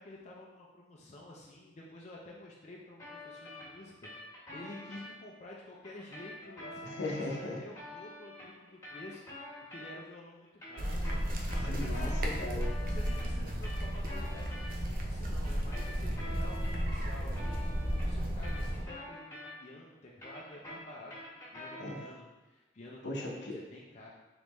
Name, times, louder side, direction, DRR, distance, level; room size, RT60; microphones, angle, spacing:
voice 1, 0.0-7.0 7.4-9.2 9.7-12.1 12.9-21.1 21.5-24.1, left 1 dB, 40° left, -3 dB, 0.5 m, -50 dB
sound 1, 3.0-5.1 5.8-10.2 10.5-14.7 15.4-19.8 20.1-22.2, left 1 dB, 20° left, 1.4 m, -47 dB
voice 2, 6.8-7.6 11.7-12.8 21.8-22.0 23.0-23.6, left 2 dB, 80° left, 0 dB, 0.7 m, -38 dB
sound 2, 10.8-18.8, equal, 55° right, 0.6 m, -33 dB
3.9 x 3.5 x 3.1 m, 1.1 s
head